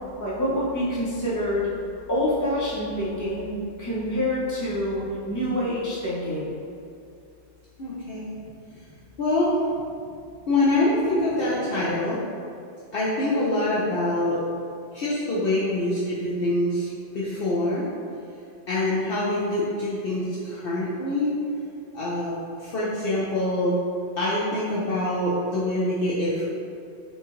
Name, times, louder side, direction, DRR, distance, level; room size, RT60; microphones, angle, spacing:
voice 1, 0.2-1.7 2.1-3.5 3.8-6.5 8.8-8.9, left 1 dB, 20° left, -9 dB, 0.8 m, -26 dB
voice 2, 7.8-8.3 9.2-9.6 10.5-12.2 12.9-14.4 14.9-17.9 18.7-21.3 21.9-22.3 22.6-23.8 24.2-26.5, left 1 dB, 60° left, -8 dB, 0.7 m, -25 dB
4.1 x 2.4 x 3.0 m, 2.4 s
omnidirectional pair, 1.3 m